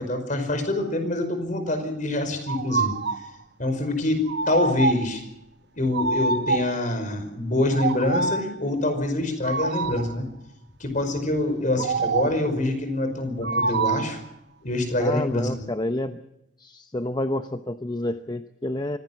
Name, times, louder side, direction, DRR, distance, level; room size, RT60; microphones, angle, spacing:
voice 1, 0.0-3.2 3.6-5.2 5.8-10.2 10.8-14.2 14.6-15.7, left 1 dB, 45° left, 8 dB, 5.2 m, -25 dB
sound 1, 2.5-3.3 4.3-5.2 5.9-6.8 7.7-8.6 9.4-10.1 11.8-12.5 13.4-14.2, right 4 dB, 60° right, 0.9 m, -26 dB
voice 2, 15.0-16.2 16.6-19.0, left 1 dB, 25° left, 9 dB, 0.8 m, -29 dB
24.5 x 17.0 x 7.7 m, 0.83 s
head